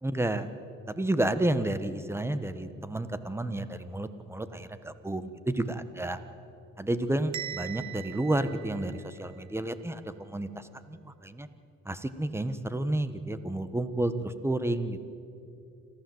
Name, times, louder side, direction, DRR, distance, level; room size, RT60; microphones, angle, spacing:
voice 1, 0.0-0.5 0.9-6.2 6.8-11.5 11.9-15.0, right 1 dB, 10° right, 11 dB, 1.2 m, -31 dB
Bell, 7.3-9.4, right 11 dB, 65° right, 1.1 m, -41 dB
26.5 x 15.0 x 7.9 m, 2.7 s
cardioid pair, 90°, 30 cm